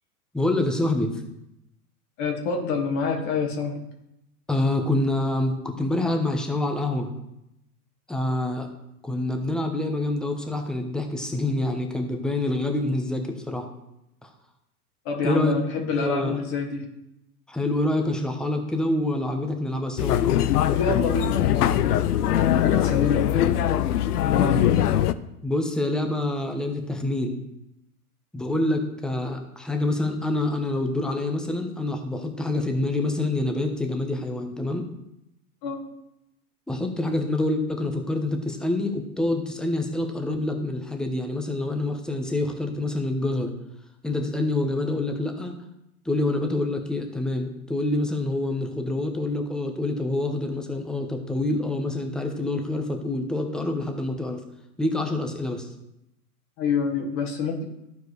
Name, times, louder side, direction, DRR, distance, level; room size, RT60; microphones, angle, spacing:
voice 1, 0.3-1.2 4.5-7.1 8.1-8.7 9.0-13.7 14.2-14.3 15.2-15.6 15.8-16.4 17.5-20.2 25.4-27.4 28.3-34.8 36.7-43.5 44.0-45.6 46.0-54.4 54.8-55.7, left 2 dB, ahead, 4 dB, 0.8 m, -26 dB
voice 2, 2.2-3.8 15.1-16.9 20.6-24.8 35.6-35.8 56.6-57.6, left 5 dB, 40° left, 2 dB, 1.9 m, -27 dB
sound 1, 20.0-25.1, left 11 dB, 80° left, 0.6 m, -21 dB
13.5 x 4.6 x 3.1 m, 0.84 s
hypercardioid pair, 115°, 46 cm